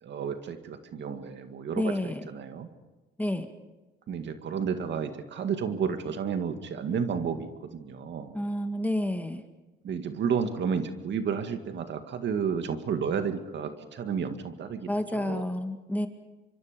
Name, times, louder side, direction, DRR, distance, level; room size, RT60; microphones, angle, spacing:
voice 1, 0.0-2.7 4.1-8.4 9.8-15.5, right 6 dB, 65° right, 7 dB, 2.1 m, -32 dB
voice 2, 1.8-2.3 3.2-3.5 8.3-9.4 14.9-16.1, left 1 dB, 10° left, 6 dB, 2.0 m, -30 dB
26.0 x 24.0 x 5.2 m, 1.1 s
cardioid pair, 90°, 20 cm